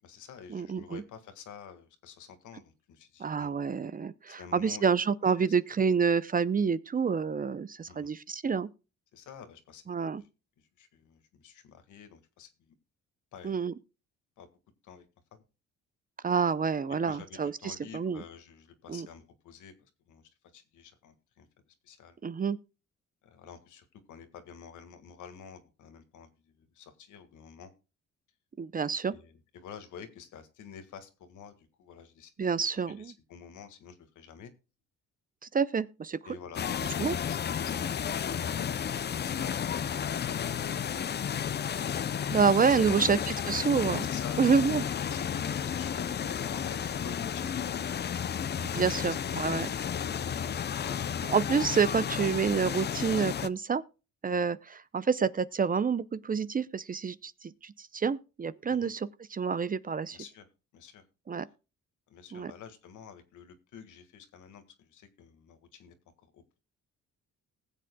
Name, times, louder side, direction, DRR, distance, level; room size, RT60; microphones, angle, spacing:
voice 1, 0.0-3.6 4.3-4.9 5.4-5.5 7.9-8.1 9.1-9.8 10.1-10.3 10.6-12.7 13.3-13.6 14.4-14.5 14.8-15.1 15.3-15.4 17.0-22.2 23.2-27.7 29.1-32.3 32.6-34.5 36.3-37.4 37.6-38.8 39.1-41.4 42.4-43.5 44.0-44.7 45.1-48.0 48.9-51.1 54.3-54.5 58.7-58.9 60.1-60.5 60.7-61.0 62.1-66.0 66.2-66.6, left 7 dB, 80° left, 1.8 m, -49 dB
voice 2, 0.5-1.0 3.2-8.7 9.9-10.2 13.4-13.7 16.2-18.2 18.9-19.1 22.2-22.6 28.6-29.2 32.4-33.1 35.5-36.2 37.0-37.2 42.3-43.2 43.5-44.0 44.4-44.8 48.6-49.7 51.3-53.8 54.2-60.2 61.3-61.5 62.3-62.5, right 6 dB, 30° right, 0.6 m, -28 dB
sound 1, 36.5-53.5, left 8 dB, 35° left, 0.5 m, -32 dB
20.0 x 7.6 x 2.3 m
cardioid pair, 90°, 30 cm